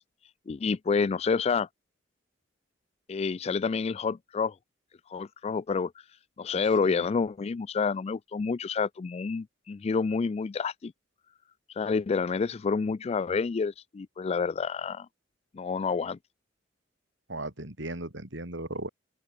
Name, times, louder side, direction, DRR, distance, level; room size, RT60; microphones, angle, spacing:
voice 1, 0.5-1.7 3.1-4.6 5.1-5.9 6.4-10.9 11.7-15.1 15.5-16.2, left 5 dB, 35° left, 0.3 m, -28 dB
voice 2, 17.3-18.9, right 2 dB, 70° right, 5.2 m, -37 dB
open air
head